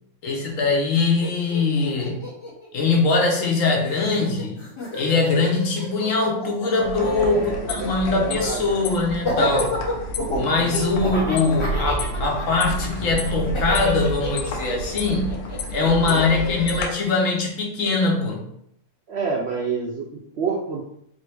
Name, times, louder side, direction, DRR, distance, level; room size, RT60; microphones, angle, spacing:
voice 1, 0.2-2.3 2.7-4.6 4.9-9.8 10.3-15.3 15.7-18.5, left 3 dB, 65° left, 0 dB, 1.2 m, -22 dB
Laughter, 0.9-1.0 1.2-3.5 3.8-16.9, left 1 dB, 25° left, 0.8 m, -31 dB
sound 1, 6.8-16.8, equal, 85° left, 1.2 m, -30 dB
voice 2, 7.0-8.6 15.8-16.3 19.1-20.8, right 4 dB, 65° right, -1 dB, 0.7 m, -28 dB
4.0 x 2.7 x 3.3 m, 0.73 s
omnidirectional pair, 1.6 m